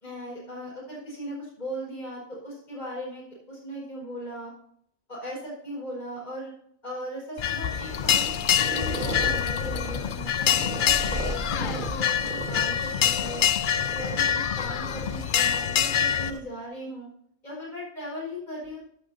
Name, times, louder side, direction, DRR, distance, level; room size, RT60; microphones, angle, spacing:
voice 1, 0.0-4.5 5.1-6.5 6.8-8.4 8.7-13.5 13.9-17.1 17.4-18.8, equal, 35° left, -6 dB, 4.9 m, -38 dB
sound 1, 7.4-16.3, left 9 dB, 60° left, 0.5 m, -25 dB
sound 2, 7.7-16.4, right 2 dB, 90° right, 2.0 m, -37 dB
13.5 x 10.5 x 2.7 m, 0.66 s
omnidirectional pair, 1.3 m